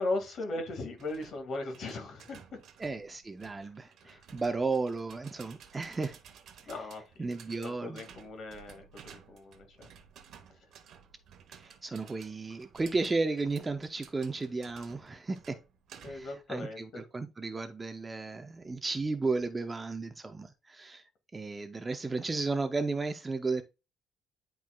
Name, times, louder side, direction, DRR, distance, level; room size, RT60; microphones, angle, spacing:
voice 1, 0.0-2.6 4.0-4.2 6.7-7.4 7.6-9.9 16.0-17.0, left 2 dB, 45° left, 1.8 m, -38 dB
sound 1, 1.0-16.4, right 7 dB, 55° right, 1.0 m, -55 dB
voice 2, 2.8-6.2 7.2-8.0 11.5-15.6 16.0-21.0 21.3-23.6, right 3 dB, 15° right, 0.5 m, -34 dB
10.5 x 4.5 x 2.2 m
cardioid pair, 165°, 0 cm